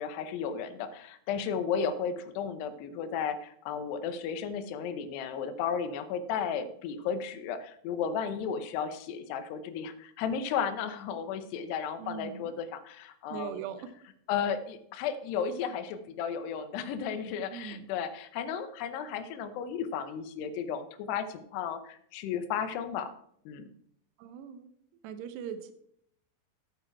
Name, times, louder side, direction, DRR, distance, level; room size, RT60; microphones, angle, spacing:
voice 1, 0.0-13.6 14.3-23.1 23.5-23.7, left 7 dB, 90° left, 10 dB, 3.0 m, -34 dB
voice 2, 12.0-12.5 13.3-13.9 17.5-17.9 24.2-24.7 25.0-25.7, right 8 dB, 90° right, 10 dB, 3.1 m, -40 dB
9.4 x 8.9 x 4.4 m, 0.68 s
omnidirectional pair, 4.7 m